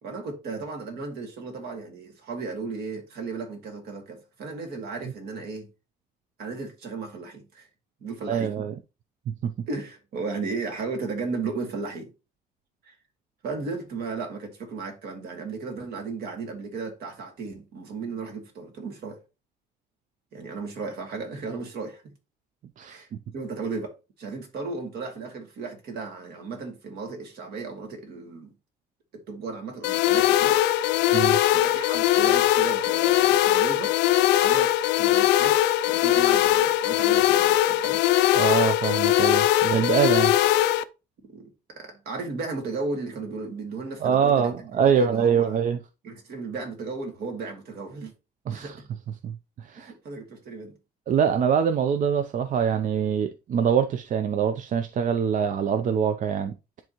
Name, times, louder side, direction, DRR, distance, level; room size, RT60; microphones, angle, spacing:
voice 1, 0.0-5.7 6.4-7.7 8.0-8.7 9.7-12.1 12.8-12.9 13.4-19.2 20.3-22.0 22.9-23.1 23.3-28.5 29.1-30.6 31.5-34.0 34.3-35.6 35.9-38.0 41.3-45.6 46.0-48.1 48.5-48.8 49.8-50.7 56.4-56.5, right 4 dB, 70° right, 2.4 m, -35 dB
voice 2, 8.3-8.7 9.3-9.5 22.8-23.2 31.1-31.4 38.3-40.3 44.0-45.8 48.5-48.8 49.2-49.9 51.1-56.5, right 7 dB, 50° right, 0.6 m, -24 dB
sound 1, 29.8-40.8, left 14 dB, 85° left, 0.5 m, -21 dB
10.5 x 3.6 x 3.0 m
cardioid pair, 110°, 17 cm